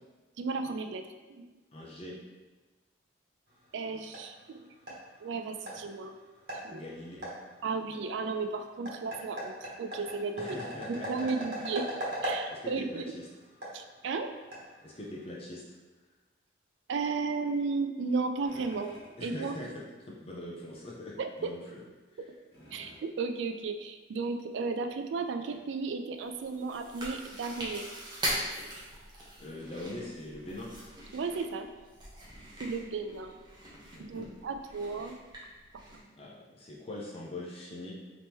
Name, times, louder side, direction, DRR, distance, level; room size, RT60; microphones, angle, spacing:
voice 1, 0.4-1.0 1.3-1.5 3.7-4.6 5.2-6.1 6.6-6.8 7.6-10.6 10.9-11.9 12.2-13.1 13.7-14.3 16.9-19.5 21.2-21.5 22.7-27.9 28.7-28.9 31.1-31.7 32.6-33.4 34.0-35.2, right 4 dB, 70° right, 7 dB, 0.3 m, -34 dB
voice 2, 1.7-2.2 6.7-7.3 10.4-11.7 12.5-13.3 14.8-15.8 19.2-19.7 20.0-21.8 29.4-30.7 33.9-34.3 36.2-38.0, left 1 dB, 30° left, -4 dB, 0.6 m, -42 dB
sound 1, 3.5-15.3, right 1 dB, 55° right, 1.2 m, -41 dB
sound 2, 18.4-19.2 20.3-21.0 21.4-21.5 22.5-23.0 24.3-24.4 24.8-24.9 25.5-25.6, equal, 60° left, 1.3 m, -53 dB
Chewing mastication, 26.2-36.0, right 1 dB, 20° right, 0.8 m, -41 dB
4.2 x 3.0 x 3.5 m, 1.2 s
head